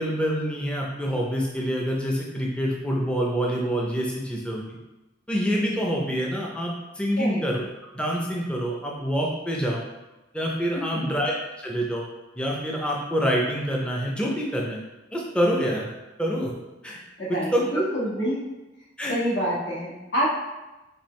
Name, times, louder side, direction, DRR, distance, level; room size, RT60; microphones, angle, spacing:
voice 1, 0.0-4.6 5.3-7.6 7.9-9.8 10.3-12.0 12.4-14.8 15.1-15.9 16.2-16.5 16.8-17.0 17.5-17.6 19.0-19.1, equal, 5° left, -3 dB, 0.5 m, -26 dB
voice 2, 10.7-11.1 17.2-18.4 19.0-20.3, equal, 75° left, -6 dB, 1.4 m, -27 dB
4.3 x 3.5 x 3.1 m, 1.0 s
head